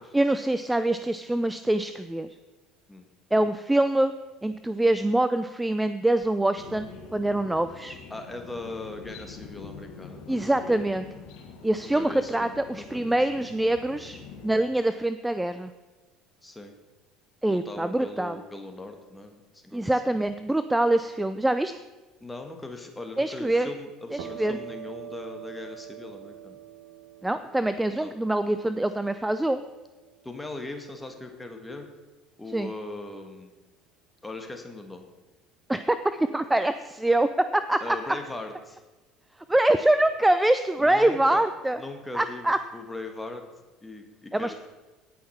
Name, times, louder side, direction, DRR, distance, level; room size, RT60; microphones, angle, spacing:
voice 1, 0.1-2.3 3.3-4.1 4.4-6.9 7.1-8.0 10.3-11.1 11.6-15.7 17.4-18.4 19.7-21.7 23.2-23.7 24.1-24.6 27.2-29.6 32.5-32.7 35.7-38.0 39.5-41.8 42.1-42.6 44.3-44.5, right 1 dB, 10° right, 11 dB, 0.5 m, -24 dB
sound 1, 6.6-14.5, left 5 dB, 70° left, 1.7 m, -45 dB
voice 2, 8.1-10.4 11.8-13.2 16.4-16.7 17.5-19.9 22.2-26.6 28.0-28.1 30.2-31.9 32.4-33.5 34.2-35.1 37.8-38.8 40.8-41.4 41.7-43.4 43.8-44.5, left 2 dB, 10° left, 4 dB, 1.6 m, -39 dB
sound 2, 24.2-31.6, right 11 dB, 70° right, 1.0 m, -46 dB
17.0 x 5.8 x 4.3 m, 1.2 s
hypercardioid pair, 75°, 0 cm